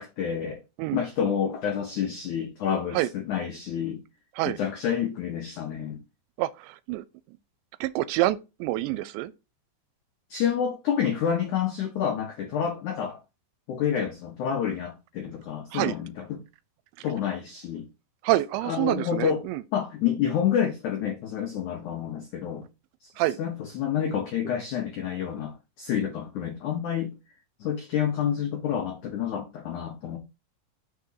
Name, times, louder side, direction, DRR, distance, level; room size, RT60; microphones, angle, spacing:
voice 1, 0.0-0.6 0.9-4.0 4.4-6.0 10.3-13.2 13.7-16.4 17.0-17.9 18.6-19.4 19.7-22.7 23.0-23.1 23.4-27.1 27.6-30.2, left 8 dB, 85° left, 1.7 m, -28 dB
voice 2, 6.4-7.0 7.8-9.3 15.7-16.0 18.2-19.6 23.2-23.4, right 16 dB, 85° right, 2.7 m, -27 dB
6.4 x 3.6 x 5.6 m
omnidirectional pair, 5.1 m